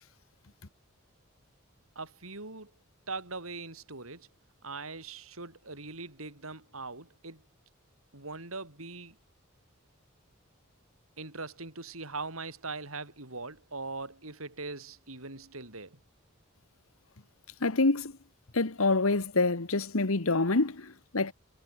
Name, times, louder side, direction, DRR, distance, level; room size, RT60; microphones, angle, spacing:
voice 1, 1.9-2.7 3.1-4.3 4.6-7.4 8.1-9.1 11.2-16.0, right 3 dB, 90° right, 6.4 m, -41 dB
voice 2, 17.6-18.1 18.5-21.3, left 3 dB, 85° left, 1.5 m, -26 dB
head